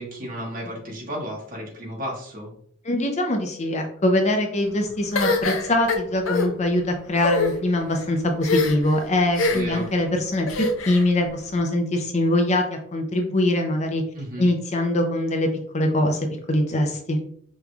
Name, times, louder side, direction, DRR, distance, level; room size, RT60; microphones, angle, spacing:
voice 1, 0.0-2.5 9.5-9.9 14.1-14.5, equal, 45° right, -2 dB, 1.4 m, -33 dB
voice 2, 2.8-14.0 14.4-15.5 15.7-16.2 16.5-17.2, left 1 dB, 35° left, 4 dB, 0.5 m, -23 dB
sound 1, 5.1-6.5 7.1-7.5 8.4-8.9 9.3-9.8 10.5-11.0, left 3 dB, 80° left, 0.7 m, -23 dB
5.2 x 3.1 x 2.3 m, 0.63 s
head